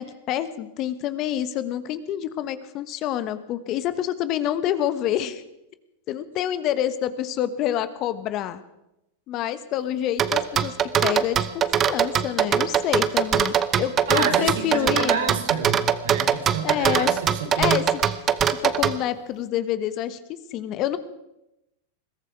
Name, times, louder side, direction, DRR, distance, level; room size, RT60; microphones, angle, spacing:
voice 1, 0.0-5.4 6.1-8.6 9.3-10.7 11.0-15.2 16.6-17.2 17.6-18.0 18.5-21.0, left 11 dB, 45° left, 13 dB, 1.2 m, -27 dB
sound 1, 10.2-19.0, right 9 dB, 30° right, 0.9 m, -21 dB
voice 2, 14.1-17.8, right 6 dB, 80° right, 5 dB, 3.2 m, -29 dB
21.5 x 14.0 x 4.8 m, 0.89 s
hypercardioid pair, 110°, 0 cm